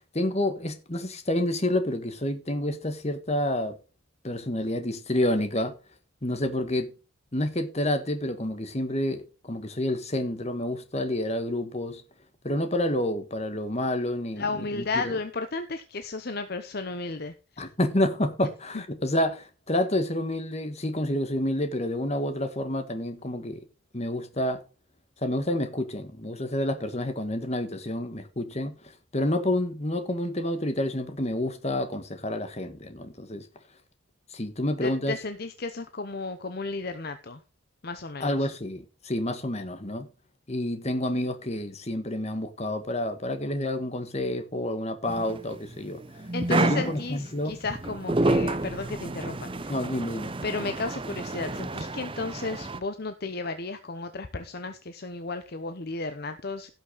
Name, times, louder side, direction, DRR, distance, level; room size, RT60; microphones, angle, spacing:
voice 1, 0.1-3.8 4.2-5.7 6.2-6.9 7.3-12.0 12.4-15.1 17.6-23.6 23.9-24.6 25.2-33.5 34.3-35.2 38.2-40.1 40.5-46.0 46.5-47.6 49.7-50.3, left 1 dB, 30° left, 1.5 m, -29 dB
voice 2, 14.4-17.6 34.8-37.4 37.8-38.5 46.3-49.7 50.4-56.7, left 3 dB, 50° left, 0.8 m, -33 dB
sound 1, 45.1-52.8, right 2 dB, 25° right, 0.7 m, -30 dB
17.0 x 6.1 x 3.9 m
head